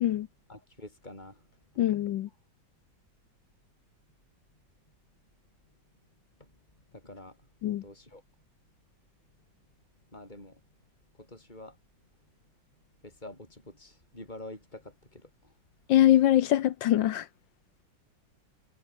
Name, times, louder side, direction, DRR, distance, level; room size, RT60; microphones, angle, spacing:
voice 1, 0.5-1.5 6.4-6.5 6.9-7.5 7.8-8.2 10.1-10.6 11.2-11.8 13.0-15.5, left 1 dB, 20° left, 7.7 m, -47 dB
voice 2, 1.8-2.3 7.6-7.8 15.9-17.3, left 12 dB, 70° left, 1.4 m, -23 dB
omnidirectional pair, 2.2 m